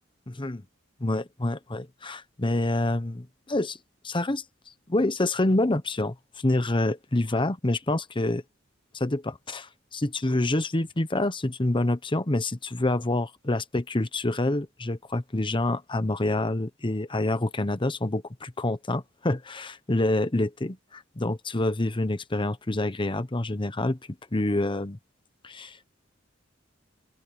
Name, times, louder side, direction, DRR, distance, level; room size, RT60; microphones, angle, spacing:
voice 1, 0.3-0.6 1.0-3.8 4.0-4.4 4.9-6.1 6.4-8.4 8.9-24.0 24.3-25.0 25.4-25.8, left 2 dB, 25° left, 1.0 m, -27 dB
open air
head